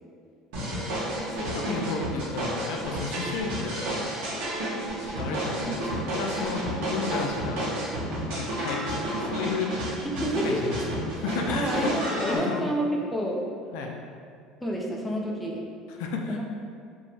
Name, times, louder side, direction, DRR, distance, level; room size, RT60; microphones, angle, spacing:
voice 1, 0.5-0.9 1.4-4.2 5.0-5.8 6.1-7.7 8.3-9.9 10.4-10.8 11.2-12.6 13.7-14.0 15.9-16.4, left 4 dB, 80° left, 1 dB, 0.3 m, -33 dB
sound 1, 0.5-12.4, right 1 dB, 80° right, 0.7 m, -31 dB
voice 2, 10.0-10.7 11.5-13.4 14.6-15.6 16.3-16.4, equal, 5° left, -3 dB, 0.3 m, -29 dB
2.9 x 2.2 x 2.9 m, 2.2 s
cardioid pair, 135°, 0 cm